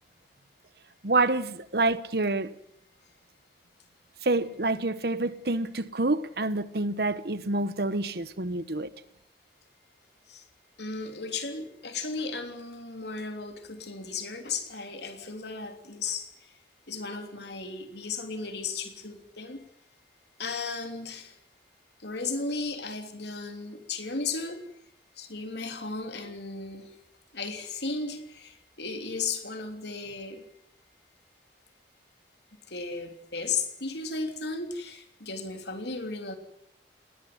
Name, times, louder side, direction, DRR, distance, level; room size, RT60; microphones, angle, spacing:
voice 1, 1.0-2.5 4.2-8.9, right 2 dB, 55° right, 1.2 m, -27 dB
voice 2, 10.8-16.5 16.9-19.6 20.4-21.4 22.0-24.6 25.2-26.9 27.3-30.4 32.7-36.3, left 4 dB, 65° left, 3.4 m, -35 dB
20.0 x 18.5 x 9.6 m
head